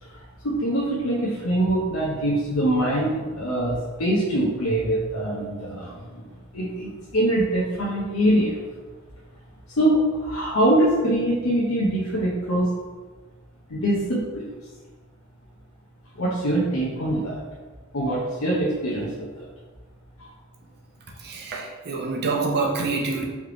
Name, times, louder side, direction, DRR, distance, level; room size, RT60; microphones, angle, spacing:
voice 1, 0.0-6.2 6.5-8.6 9.7-12.7 13.7-14.4 16.1-17.4 17.9-19.5 20.2-20.3, right 1 dB, 75° left, -5 dB, 0.8 m, -23 dB
voice 2, 21.2-23.3, right 3 dB, 50° right, 0 dB, 0.7 m, -26 dB
3.4 x 3.2 x 3.8 m, 1.4 s
head